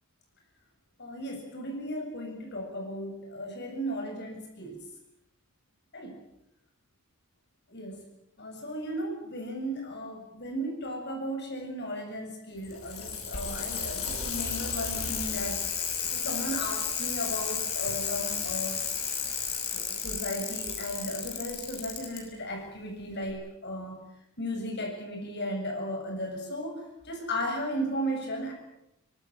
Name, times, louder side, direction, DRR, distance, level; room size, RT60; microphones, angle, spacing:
voice 1, 1.0-4.8 5.9-6.2 7.7-8.0 8.4-15.6 16.0-18.8 19.7-24.0 24.4-28.5, equal, 50° left, 3 dB, 7.9 m, -35 dB
Bicycle, 12.6-22.2 23.3-23.4, left 7 dB, 75° left, 6.7 m, -33 dB
24.5 x 20.0 x 9.1 m, 0.82 s
head